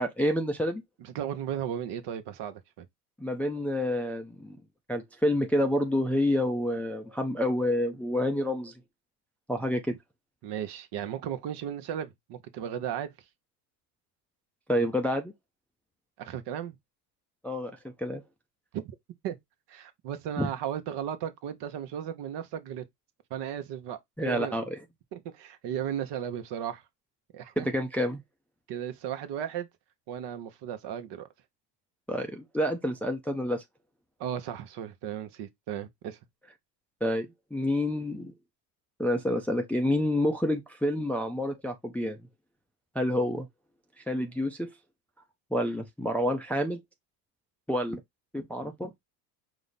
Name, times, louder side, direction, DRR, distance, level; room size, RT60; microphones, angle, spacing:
voice 1, 0.0-0.8 3.2-4.6 4.9-8.7 9.5-10.0 14.7-15.3 17.4-18.2 20.4-20.5 24.2-24.8 27.6-28.2 32.1-33.6 37.0-38.3 39.0-42.2 42.9-43.5 44.1-44.7 45.5-46.8 47.7-48.0 48.3-48.9, left 1 dB, 5° left, 0.5 m, -28 dB
voice 2, 1.0-2.9 10.4-13.1 16.2-16.8 18.7-18.8 19.2-19.4 19.7-22.8 23.3-24.6 25.1-26.8 27.3-27.7 28.7-29.7 30.1-31.3 34.2-36.2, right 9 dB, 55° right, 0.9 m, -35 dB
5.0 x 2.0 x 4.0 m
hypercardioid pair, 80°, 50 cm